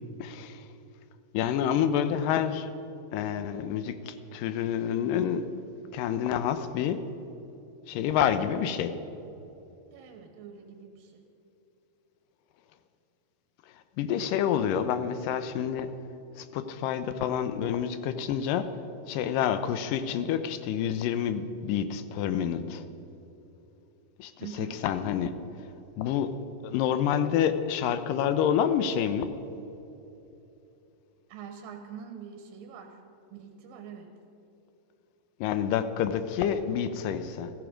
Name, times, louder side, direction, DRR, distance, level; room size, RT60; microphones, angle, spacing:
voice 1, 0.2-0.6 1.3-2.7 3.1-5.5 5.9-7.0 7.9-8.9 14.0-15.9 16.4-18.7 19.1-22.8 24.2-24.3 24.6-25.3 26.0-26.3 26.6-29.3 35.4-37.5, left 9 dB, 80° left, 10 dB, 2.3 m, -28 dB
voice 2, 9.9-11.2 24.4-24.8 31.3-33.0 33.3-34.1, right 8 dB, 85° right, 4 dB, 2.7 m, -44 dB
15.5 x 14.5 x 5.1 m, 2.9 s
omnidirectional pair, 4.0 m